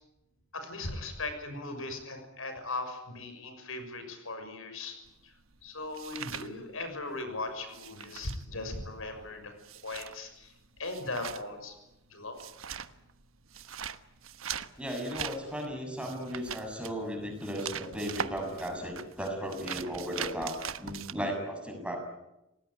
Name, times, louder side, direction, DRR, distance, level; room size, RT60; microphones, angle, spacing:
voice 1, 0.5-5.0 5.2-5.3 5.6-9.5 9.8-10.5 10.8-11.7 12.1-12.4, left 2 dB, 75° left, 7 dB, 6.4 m, -38 dB
sound 1, 5.1-7.2 7.5-21.1, right 8 dB, 80° right, 1.3 m, -41 dB
voice 2, 14.8-22.0, equal, 5° right, 3 dB, 7.0 m, -36 dB
28.5 x 19.0 x 9.7 m, 0.92 s
head